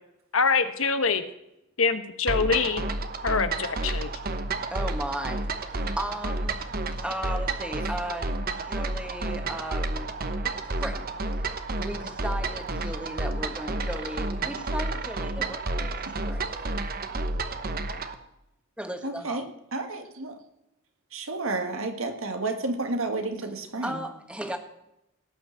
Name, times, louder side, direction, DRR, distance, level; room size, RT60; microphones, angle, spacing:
voice 1, 0.3-1.2 1.8-2.8 3.2-4.1, left 5 dB, 85° left, 9 dB, 1.2 m, -24 dB
sound 1, 2.3-18.1, right 2 dB, 45° right, 1.0 m, -31 dB
voice 2, 4.7-6.7 6.9-10.2 10.6-16.0 16.2-16.5 18.8-19.5 23.8-24.6, right 1 dB, 5° right, 6 dB, 1.5 m, -36 dB
voice 3, 19.0-20.4 21.1-24.0, right 2 dB, 85° right, 6 dB, 1.8 m, -31 dB
17.5 x 6.0 x 8.1 m, 0.84 s
head